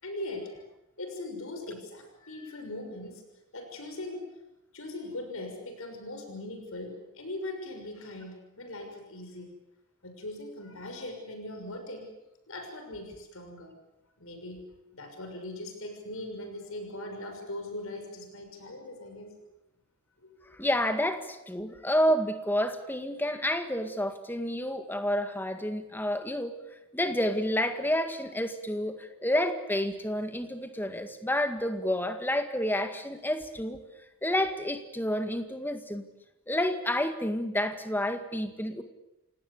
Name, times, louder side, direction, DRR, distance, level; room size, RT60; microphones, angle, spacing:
voice 1, 0.0-0.6 1.0-3.2 3.5-4.2 4.7-9.5 10.0-12.1 12.5-13.7 14.2-14.6 14.9-19.3 20.2-20.6, left 1 dB, 70° left, 5 dB, 6.2 m, -40 dB
voice 2, 20.6-26.5 26.9-33.8 34.2-36.0 36.5-38.8, left 1 dB, 10° left, 7 dB, 1.9 m, -29 dB
29.0 x 18.0 x 8.4 m, 0.93 s
head